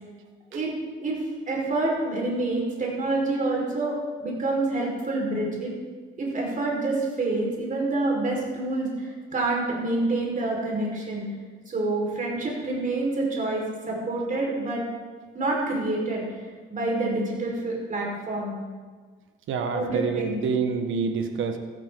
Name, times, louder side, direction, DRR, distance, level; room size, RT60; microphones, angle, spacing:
voice 1, 1.5-5.7 6.2-11.2 11.7-14.8 15.3-18.5 19.7-20.4, right 2 dB, 40° right, -2 dB, 4.8 m, -27 dB
voice 2, 19.5-21.6, right 5 dB, 80° right, 6 dB, 1.4 m, -27 dB
14.5 x 13.0 x 3.9 m, 1.5 s
cardioid pair, 90°, 20 cm